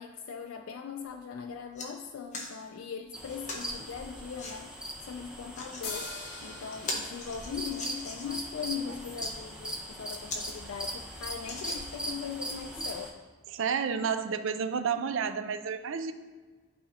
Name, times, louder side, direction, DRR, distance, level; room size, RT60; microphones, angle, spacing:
voice 1, 0.0-6.1 6.4-13.2, left 6 dB, 70° left, 4 dB, 0.4 m, -40 dB
sound 1, 1.1-1.2 1.5-1.9 2.3-2.5 3.5-3.7 4.4-4.6 5.3-5.9 6.3-6.4 6.7-8.4 9.0-9.3 9.9-10.0 10.3-10.5 10.8-10.9 11.4-12.1 12.8-12.9, left 2 dB, 35° left, 1.1 m, -40 dB
sound 2, 3.1-13.1, right 1 dB, 5° right, 0.8 m, -40 dB
sound 3, 5.8-9.4, left 3 dB, 55° left, 1.5 m, -44 dB
voice 2, 13.5-16.1, right 6 dB, 65° right, 10 dB, 0.4 m, -30 dB
11.5 x 4.1 x 2.8 m, 1.4 s
head